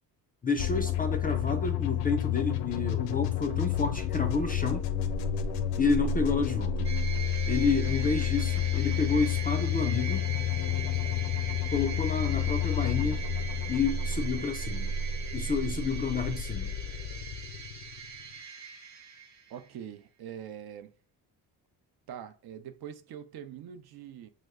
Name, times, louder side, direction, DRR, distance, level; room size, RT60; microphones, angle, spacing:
voice 1, 0.4-4.9 5.8-6.9 7.5-10.3 11.7-13.2 13.7-14.9 15.3-16.7, left 4 dB, 25° left, 0.3 m, -30 dB
sound 1, 0.6-18.3, left 8 dB, 85° left, 0.5 m, -30 dB
sound 2, 6.8-19.7, right 7 dB, 40° right, 0.9 m, -42 dB
voice 2, 19.5-20.9 22.1-24.3, right 9 dB, 65° right, 0.5 m, -43 dB
3.1 x 2.1 x 3.5 m
cardioid pair, 85°, 41 cm